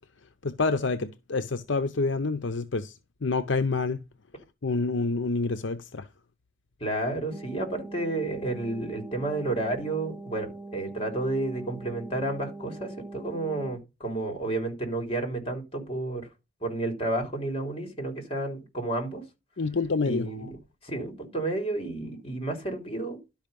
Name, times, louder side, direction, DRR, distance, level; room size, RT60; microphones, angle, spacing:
voice 1, 0.4-2.9 3.2-4.0 4.6-6.1 19.6-20.3, left 3 dB, 65° left, 0.7 m, -27 dB
voice 2, 6.8-16.2 16.6-19.2 20.0-20.5 20.8-23.2, right 2 dB, 30° left, 3.6 m, -31 dB
sound 1, 7.3-13.7, right 3 dB, 5° right, 1.5 m, -42 dB
12.0 x 5.4 x 5.3 m
head